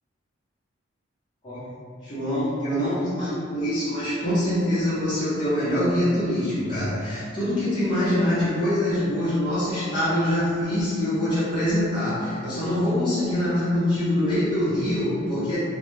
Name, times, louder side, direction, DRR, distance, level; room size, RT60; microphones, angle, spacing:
voice 1, 2.0-15.6, left 1 dB, 25° left, -14 dB, 0.7 m, -24 dB
2.1 x 2.1 x 3.1 m, 2.2 s
head